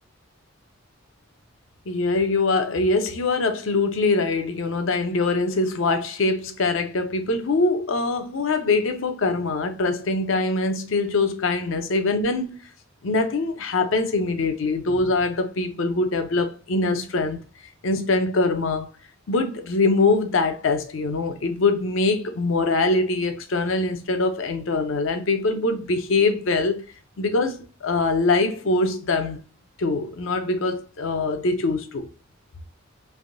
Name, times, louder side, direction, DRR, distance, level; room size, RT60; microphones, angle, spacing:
voice 1, 1.9-12.6 13.0-17.4 17.8-18.9 19.3-26.8 27.2-29.4 29.8-32.1, left 3 dB, 65° left, 0.6 m, -23 dB
3.4 x 2.6 x 2.5 m
head